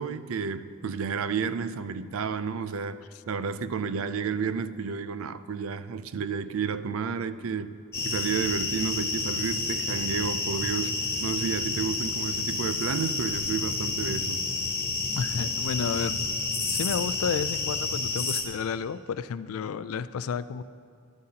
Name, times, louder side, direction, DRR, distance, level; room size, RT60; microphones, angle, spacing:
voice 1, 0.0-14.4, right 5 dB, 80° right, 0.4 m, -31 dB
sound 1, 7.9-18.4, left 3 dB, 10° left, 0.7 m, -30 dB
voice 2, 15.2-16.2 16.6-20.6, left 6 dB, 90° left, 0.3 m, -31 dB
12.0 x 12.0 x 2.9 m
head